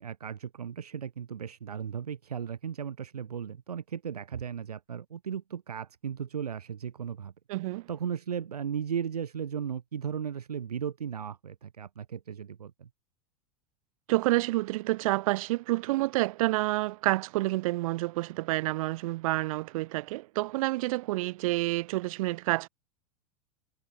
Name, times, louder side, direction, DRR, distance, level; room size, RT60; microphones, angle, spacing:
voice 1, 0.0-7.3 7.9-12.9, right 8 dB, 90° right, 1.5 m, -36 dB
voice 2, 7.5-7.9 14.1-22.7, right 19 dB, 65° right, 0.6 m, -28 dB
hypercardioid pair, 95°, 19 cm